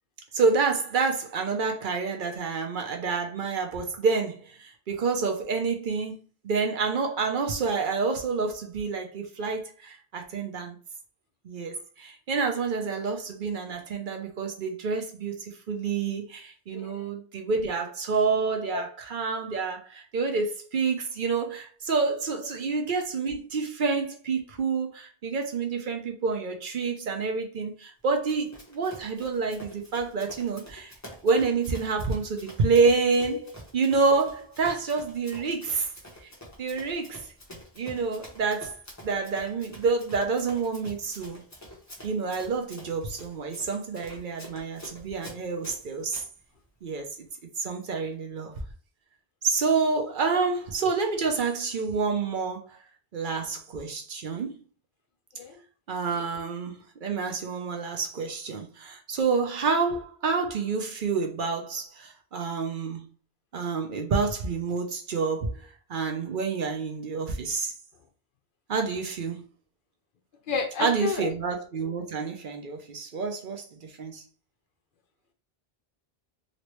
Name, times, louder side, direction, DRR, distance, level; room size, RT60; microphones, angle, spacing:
voice 1, 0.3-10.8 11.4-30.9 31.2-35.9 36.6-37.3 37.8-38.8 39.0-41.4 42.0-46.2 46.8-47.1 47.6-48.5 49.4-52.8 53.1-54.5 55.9-63.1 63.5-67.7 68.7-69.4 70.8-74.2, right 4 dB, 60° right, 0.7 m, -28 dB
voice 2, 16.7-17.1 18.7-18.8 55.4-55.5 70.5-71.3, left 4 dB, 60° left, 0.7 m, -30 dB
Run, 28.3-46.3, equal, 15° left, 1.0 m, -47 dB
3.0 x 2.9 x 3.0 m
omnidirectional pair, 1.0 m